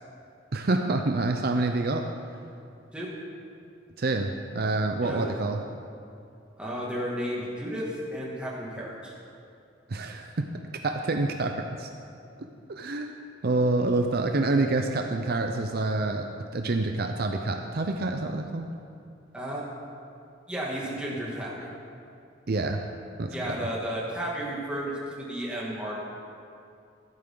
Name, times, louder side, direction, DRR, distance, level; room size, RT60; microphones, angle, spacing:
voice 1, 0.5-2.1 4.0-5.6 9.9-10.5 10.7-11.9 12.7-13.1 13.4-18.7 22.5-22.8 23.2-23.7, right 2 dB, 55° right, 4 dB, 0.6 m, -27 dB
voice 2, 6.6-9.1 19.3-19.6 20.5-21.7 23.3-26.0, equal, 5° right, -5 dB, 2.3 m, -33 dB
15.0 x 12.0 x 3.9 m, 2.5 s
head